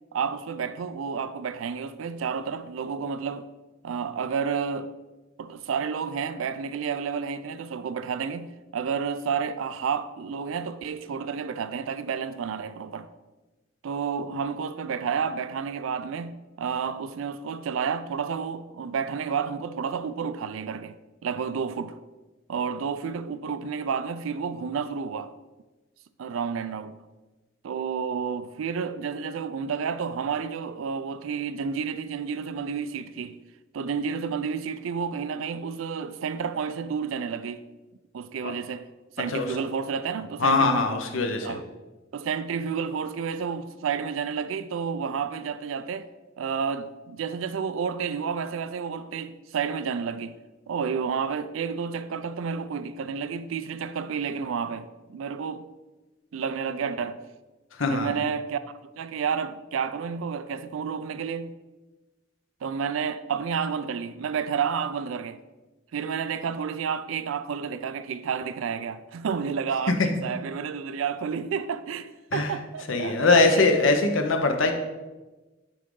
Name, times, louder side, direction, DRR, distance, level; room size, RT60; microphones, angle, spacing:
voice 1, 0.1-3.5 3.8-4.9 5.4-13.1 13.8-22.0 22.5-25.3 26.2-27.0 27.6-33.4 33.7-37.6 38.1-38.9 39.2-40.9 41.4-41.6 42.1-46.1 46.4-50.4 50.7-55.7 56.3-57.2 57.9-58.6 59.0-61.5 62.6-65.4 65.9-73.7, right 6 dB, 85° right, 0.4 m, -30 dB
voice 2, 40.4-41.6 57.8-58.1 72.3-72.5 72.9-74.7, left 3 dB, 80° left, 0.8 m, -22 dB
9.1 x 3.9 x 3.7 m
head